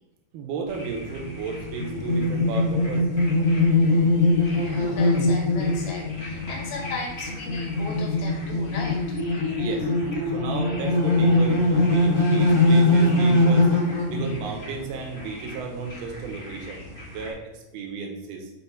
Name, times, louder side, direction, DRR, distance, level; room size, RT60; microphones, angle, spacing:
voice 1, 0.3-3.1 9.6-9.9 10.3-13.8 14.1-16.8 17.1-18.5, right 4 dB, 80° right, 1 dB, 2.7 m, -33 dB
sound 1, 0.7-17.3, left 2 dB, 40° left, 0.4 m, -23 dB
voice 2, 4.5-9.3, left 3 dB, 75° left, 1 dB, 2.8 m, -37 dB
7.0 x 3.2 x 4.5 m, 0.99 s
omnidirectional pair, 4.6 m